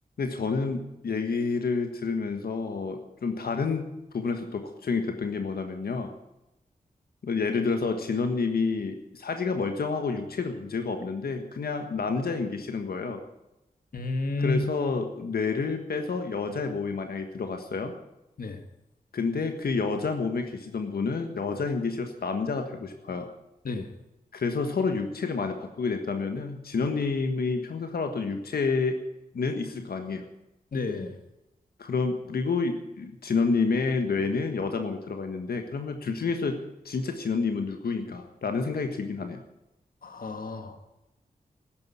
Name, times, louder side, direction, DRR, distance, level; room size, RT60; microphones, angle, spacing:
voice 1, 0.2-6.1 7.2-13.2 14.4-17.9 19.1-23.3 24.3-29.0 29.3-30.2 31.8-39.4, left 4 dB, 90° left, 5 dB, 1.5 m, -29 dB
voice 2, 13.9-14.6 18.4-18.6 23.6-23.9 30.7-31.2 40.0-40.8, left 2 dB, 70° left, 7 dB, 1.7 m, -30 dB
13.5 x 10.5 x 8.4 m, 0.93 s
wide cardioid pair, 95°, 15 cm